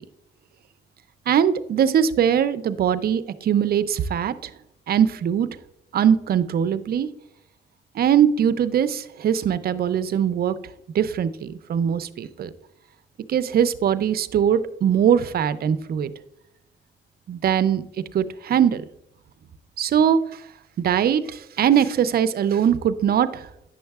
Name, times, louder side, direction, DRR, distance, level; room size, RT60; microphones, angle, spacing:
voice 1, 1.3-4.5 4.9-5.5 5.9-7.1 7.9-10.6 10.9-12.5 13.3-16.1 17.3-17.8 18.1-18.8 19.8-20.4 20.8-23.5, right 8 dB, 50° right, 14 dB, 0.5 m, -21 dB
9.2 x 6.3 x 2.3 m, 0.82 s
cardioid pair, 90°, 20 cm